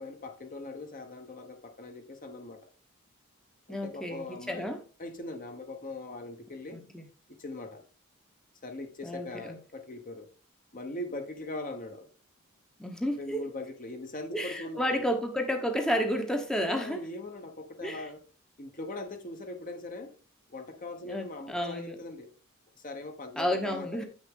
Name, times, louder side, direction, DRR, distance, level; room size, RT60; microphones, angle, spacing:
voice 1, 0.0-2.7 3.7-6.8 7.3-7.8 8.6-10.3 10.7-12.1 13.2-15.1 16.6-18.2 18.6-20.1 20.5-22.3 22.8-24.1, left 2 dB, 40° left, 1.1 m, -41 dB
voice 2, 3.7-4.8 6.7-7.0 9.0-9.6 12.8-13.4 14.3-17.0 17.8-18.1 21.1-22.0 23.4-24.0, equal, 5° left, 0.9 m, -31 dB
9.1 x 6.4 x 3.8 m
head